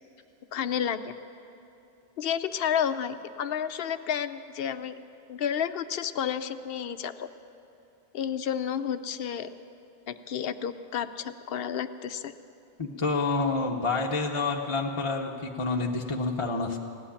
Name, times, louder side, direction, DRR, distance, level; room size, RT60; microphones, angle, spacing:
voice 1, 0.5-1.1 2.2-5.0 5.3-7.3 8.1-9.5 10.1-12.3, left 8 dB, 65° left, 11 dB, 0.7 m, -31 dB
voice 2, 12.8-16.8, left 3 dB, 30° left, 1 dB, 0.8 m, -28 dB
16.5 x 8.1 x 10.0 m, 2.8 s
omnidirectional pair, 1.2 m